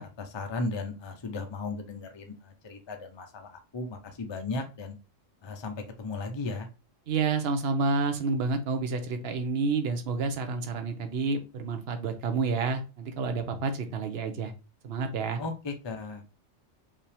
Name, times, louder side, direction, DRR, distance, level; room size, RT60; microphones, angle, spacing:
voice 1, 0.0-5.0 5.4-6.7 15.4-16.2, left 3 dB, 30° left, 5 dB, 0.6 m, -36 dB
voice 2, 7.1-14.5 14.8-15.4, right 4 dB, 55° right, 7 dB, 1.0 m, -29 dB
5.3 x 2.8 x 3.3 m, 0.31 s
omnidirectional pair, 1.3 m